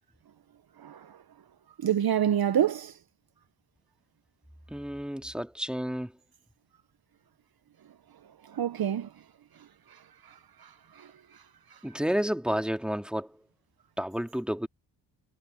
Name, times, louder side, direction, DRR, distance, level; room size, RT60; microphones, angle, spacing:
voice 1, 0.8-1.2 1.8-2.9 8.4-9.1 10.6-10.7 10.9-11.1, right 9 dB, 50° right, 1.2 m, -27 dB
voice 2, 4.7-6.1 11.8-13.4 14.0-14.7, equal, ahead, 2.9 m, -31 dB
supercardioid pair, 55°, 47 cm